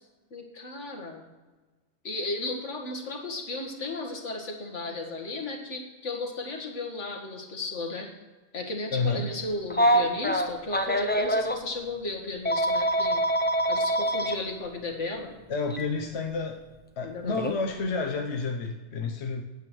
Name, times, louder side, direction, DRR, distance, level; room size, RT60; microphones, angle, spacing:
voice 1, 0.3-1.3 2.0-8.1 8.5-13.2 13.7-15.3 17.0-17.4 19.0-19.1, left 2 dB, 90° left, 1 dB, 2.1 m, -35 dB
voice 2, 8.9-9.2 15.5-16.6 17.0-19.4, left 4 dB, 70° left, 3 dB, 1.2 m, -30 dB
Telephone, 9.7-11.6 12.4-14.3 15.7-15.8 17.4-17.6, equal, 10° left, 0.6 m, -24 dB
9.7 x 8.5 x 6.2 m, 1.3 s
omnidirectional pair, 1.2 m